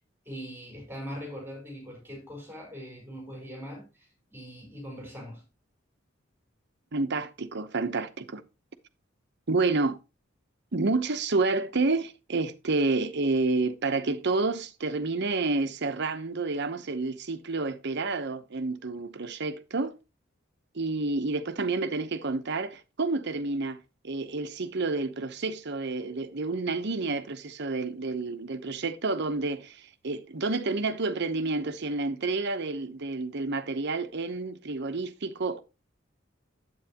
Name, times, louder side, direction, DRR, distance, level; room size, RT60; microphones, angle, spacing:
voice 1, 0.2-5.4, equal, 10° right, 4.6 m, -41 dB
voice 2, 6.9-8.4 9.5-10.0 10.7-19.9 20.7-35.6, right 3 dB, 60° right, 0.9 m, -29 dB
9.4 x 8.6 x 2.9 m
head